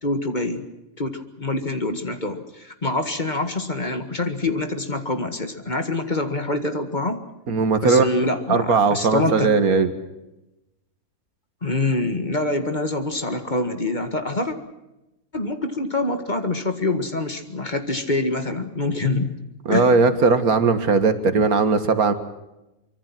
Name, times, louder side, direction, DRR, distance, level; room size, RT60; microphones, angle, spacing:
voice 1, 0.0-0.7 1.0-7.2 7.8-9.5 11.6-14.6 15.3-19.4 19.7-19.9, left 2 dB, 30° left, 7 dB, 1.9 m, -25 dB
voice 2, 7.5-8.1 8.5-9.9 19.7-22.1, right 4 dB, 85° right, 10 dB, 2.1 m, -18 dB
25.0 x 23.5 x 6.1 m, 0.94 s
omnidirectional pair, 1.5 m